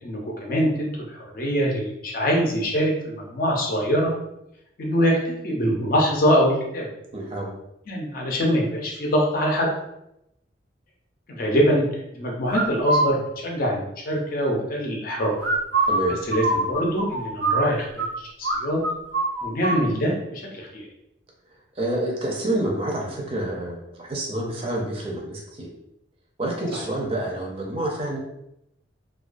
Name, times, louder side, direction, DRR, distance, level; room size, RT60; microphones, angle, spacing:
voice 1, 0.0-4.1 4.8-6.9 7.9-9.7 11.3-15.3 16.3-18.8 19.4-20.9 26.7-26.8, equal, 50° left, -1 dB, 0.5 m, -24 dB
voice 2, 7.1-7.5 15.9-16.2 21.8-25.7 26.4-28.2, right 1 dB, 30° right, -2 dB, 0.5 m, -28 dB
sound 1, 12.5-13.1 15.4-18.1 18.4-18.6 18.8-19.8, right 2 dB, 85° right, 0.6 m, -23 dB
2.3 x 2.2 x 2.4 m, 0.82 s
head